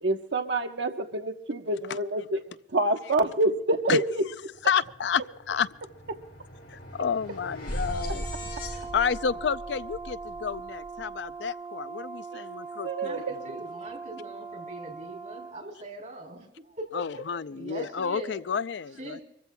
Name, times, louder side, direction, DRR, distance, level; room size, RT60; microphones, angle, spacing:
voice 1, 0.0-4.3 6.1-6.2 7.3-7.4 8.1-8.2 12.3-12.4 12.8-13.4, right 2 dB, 85° right, 1.2 m, -27 dB
sound 1, 4.5-4.7 5.0-11.2, equal, 55° left, 7.1 m, -39 dB
voice 2, 4.6-5.2 5.5-5.7 6.7-8.2 8.9-13.2 16.9-19.2, left 6 dB, 85° left, 0.5 m, -30 dB
Brass instrument, 7.8-15.6, right 4 dB, 5° right, 7.5 m, -40 dB
voice 3, 13.0-17.3 17.5-18.4 19.0-19.2, right 1 dB, 45° right, 3.7 m, -41 dB
25.5 x 15.0 x 2.3 m
head